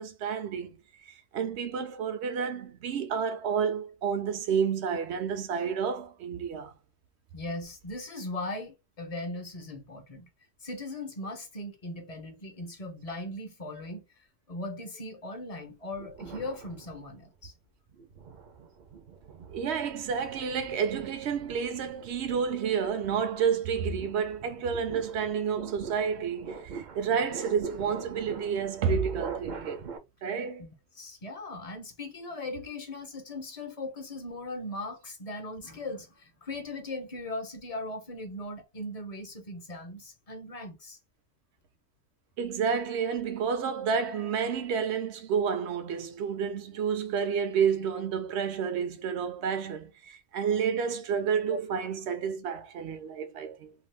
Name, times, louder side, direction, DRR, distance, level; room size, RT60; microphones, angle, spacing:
voice 1, 0.0-6.7 19.5-29.9 30.2-30.7 42.4-53.7, right 6 dB, 75° right, 0.9 m, -30 dB
voice 2, 7.3-10.3 10.6-14.0 14.5-17.5 30.6-30.7 30.9-41.0 51.5-51.6, left 2 dB, 40° left, 0.6 m, -39 dB
sound 1, 15.9-17.4 17.9-30.0, right 5 dB, 55° right, 0.6 m, -44 dB
2.6 x 2.2 x 3.2 m
omnidirectional pair, 1.1 m